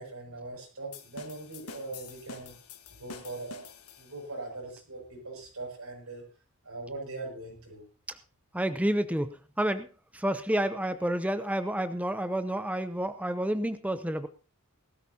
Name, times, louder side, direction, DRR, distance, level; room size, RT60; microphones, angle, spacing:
voice 1, 0.0-2.5 3.0-3.6 4.0-6.2 6.6-7.9, right 2 dB, 80° right, 0 dB, 6.6 m, -41 dB
sound 1, 0.9-4.4, left 5 dB, 90° left, 1.4 m, -47 dB
voice 2, 8.5-9.9 10.1-14.3, right 1 dB, 5° right, 11 dB, 0.6 m, -29 dB
19.5 x 13.0 x 2.8 m, 0.33 s
head